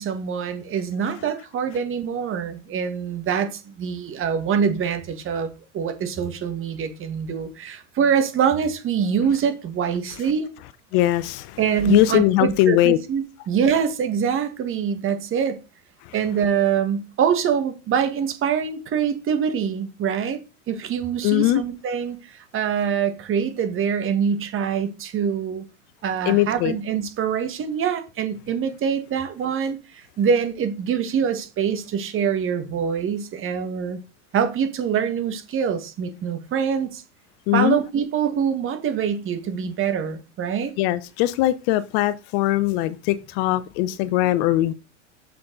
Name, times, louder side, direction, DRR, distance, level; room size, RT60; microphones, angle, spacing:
voice 1, 0.0-10.5 11.6-15.6 16.1-20.4 20.7-25.6 26.0-34.0 34.3-37.0 37.5-40.7, right 7 dB, 35° right, 1.6 m, -24 dB
voice 2, 10.9-11.6 11.9-13.0 16.1-16.2 21.2-21.6 26.3-26.8 37.5-37.8 40.8-44.7, left 15 dB, 50° left, 0.7 m, -20 dB
6.9 x 6.6 x 3.9 m
hypercardioid pair, 95°, 37 cm